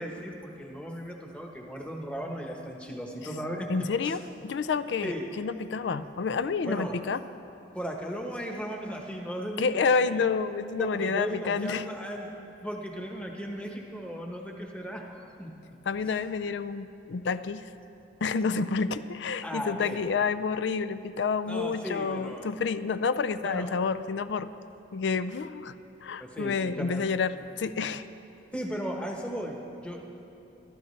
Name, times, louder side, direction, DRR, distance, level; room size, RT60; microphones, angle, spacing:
voice 1, 0.0-4.2 5.0-5.3 6.6-7.0 7.7-10.2 10.8-12.3 12.6-15.5 19.4-20.0 21.5-22.5 23.4-23.7 26.2-27.0 28.5-30.0, equal, 5° left, 1 dB, 1.1 m, -36 dB
voice 2, 3.7-7.2 9.6-11.9 15.9-17.7 18.2-24.5 24.9-25.7 26.0-28.0, left 5 dB, 75° left, 13 dB, 0.4 m, -29 dB
20.5 x 13.0 x 3.2 m, 3.0 s
head